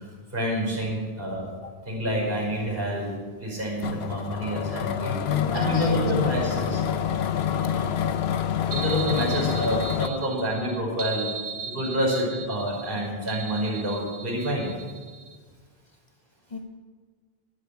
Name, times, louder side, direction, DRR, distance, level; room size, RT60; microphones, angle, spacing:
voice 1, 0.0-1.4 1.9-5.2 5.5-6.8 8.7-11.3 11.6-14.7, equal, 65° right, -5 dB, 5.3 m, -28 dB
sound 1, 3.8-10.1, left 8 dB, 80° left, 1.0 m, -27 dB
voice 2, 5.3-6.2 7.5-8.1 16.5-16.6, left 3 dB, 35° left, 6 dB, 1.3 m, -33 dB
sound 2, 8.7-15.4, right 5 dB, 90° right, 1.6 m, -37 dB
12.0 x 9.4 x 8.5 m, 1.6 s
omnidirectional pair, 1.0 m